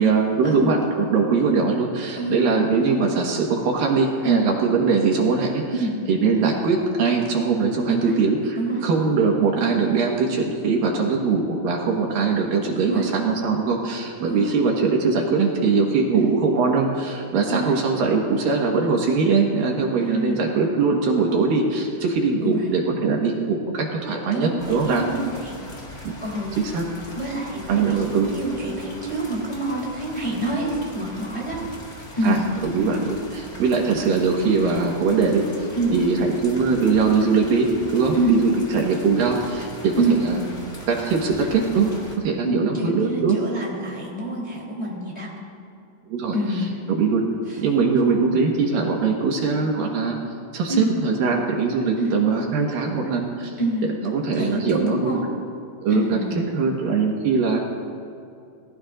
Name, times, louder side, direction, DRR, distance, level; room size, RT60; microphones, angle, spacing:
voice 1, 0.0-5.6 6.1-8.6 8.8-25.1 26.0-26.2 26.6-26.9 27.7-28.3 32.2-32.4 32.6-35.4 35.9-40.4 40.9-43.4 46.1-46.3 46.9-47.2 47.6-50.2 50.5-53.5 54.0-55.2 55.8-57.6, right 4 dB, 70° right, 0 dB, 3.0 m, -21 dB
voice 2, 20.1-20.4 22.4-22.5 24.3-25.5 26.2-26.5 27.1-31.6 32.1-32.4 35.7-36.0 38.1-38.4 39.9-40.2 42.4-45.3 46.3-46.8 47.5-47.6 50.7-50.9 52.0-52.1 53.6-53.9 54.3-55.2 55.9-56.5, right 2 dB, 10° left, -4 dB, 2.6 m, -26 dB
sound 1, 24.6-42.2, left 1 dB, 25° left, 1.5 m, -41 dB
27.5 x 19.0 x 2.6 m, 2.5 s
omnidirectional pair, 4.4 m